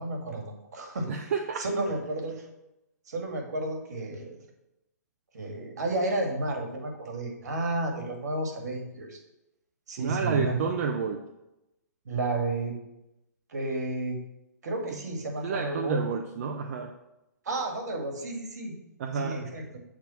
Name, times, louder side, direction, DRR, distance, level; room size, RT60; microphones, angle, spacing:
voice 1, 0.0-1.1 1.6-2.5 3.1-4.4 5.3-9.2 9.9-10.6 12.1-12.7 13.5-14.2 14.6-16.0 17.4-18.7 19.2-19.8, right 2 dB, 65° right, 2 dB, 1.8 m, -32 dB
voice 2, 1.1-1.6 10.0-11.3 15.4-16.9 19.0-19.4, right 5 dB, 50° right, 5 dB, 0.6 m, -30 dB
7.1 x 3.6 x 5.7 m, 0.92 s
hypercardioid pair, 130°, 10 cm